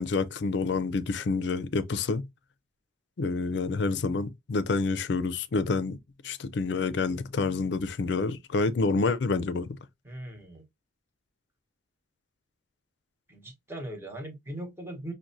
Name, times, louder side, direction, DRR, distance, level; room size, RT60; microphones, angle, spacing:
voice 1, 0.0-2.2 3.2-6.0 6.2-9.7, left 4 dB, 60° left, 0.4 m, -28 dB
voice 2, 10.0-10.6 13.3-15.1, right 1 dB, 15° right, 0.9 m, -39 dB
5.9 x 2.1 x 2.6 m
head